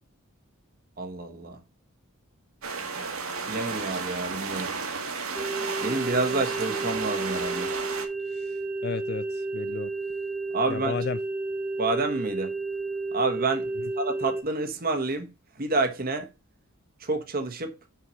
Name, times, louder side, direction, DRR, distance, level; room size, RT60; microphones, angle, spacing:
voice 1, 1.0-1.6 3.5-4.7 5.8-7.7 10.5-11.0 11.8-12.5 13.1-13.7 14.0-15.3 15.6-16.3 17.0-17.7, right 3 dB, 40° right, 1.2 m, -28 dB
sound 1, 2.6-8.1, right 5 dB, 70° right, 1.6 m, -33 dB
sound 2, 5.4-14.4, right 2 dB, 5° right, 0.9 m, -32 dB
voice 2, 8.3-9.9 10.7-11.2, left 5 dB, 45° left, 0.4 m, -34 dB
5.8 x 4.7 x 6.3 m
head